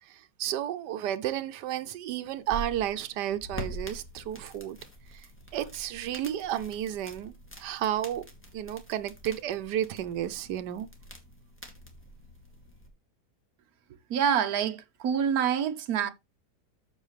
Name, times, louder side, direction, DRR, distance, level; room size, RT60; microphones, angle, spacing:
voice 1, 0.0-4.8 5.1-5.3 5.5-8.2 8.5-10.9, right 11 dB, 90° right, 1.3 m, -32 dB
sound 1, 2.3-12.9, right 1 dB, 5° left, 2.4 m, -45 dB
voice 2, 14.1-16.1, right 8 dB, 65° right, 1.3 m, -26 dB
13.5 x 5.6 x 3.2 m
omnidirectional pair, 1.8 m